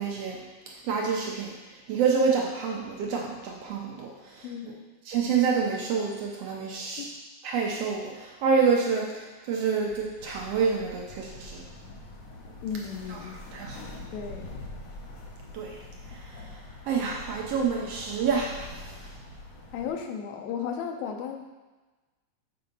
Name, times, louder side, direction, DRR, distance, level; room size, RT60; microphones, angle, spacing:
voice 1, 0.0-1.5 1.9-4.5 5.1-7.1 7.4-11.7 13.1-13.9 15.5-15.8 16.3-16.4 16.9-19.0, right 5 dB, 70° right, -1 dB, 1.6 m, -28 dB
sound 1, 10.2-19.9, left 2 dB, 70° left, 1.1 m, -44 dB
voice 2, 12.6-13.3 14.1-14.5 19.7-21.5, left 7 dB, 90° left, 4 dB, 2.0 m, -34 dB
6.8 x 4.0 x 5.1 m, 1.2 s
omnidirectional pair, 3.3 m